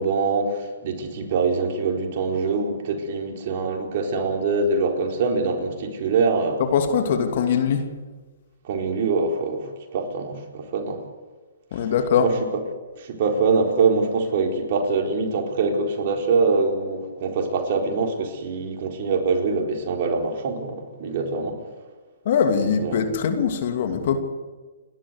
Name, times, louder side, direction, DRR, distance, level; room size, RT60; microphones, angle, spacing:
voice 1, 0.0-6.6 8.6-11.0 11.8-11.9 12.2-12.3 13.0-21.6 22.8-23.1, right 4 dB, 50° right, 2 dB, 4.4 m, -24 dB
voice 2, 6.6-7.9 11.7-12.3 22.2-24.2, left 7 dB, 55° left, 6 dB, 2.9 m, -22 dB
29.5 x 12.5 x 8.3 m, 1.3 s
hypercardioid pair, 130°, 0 cm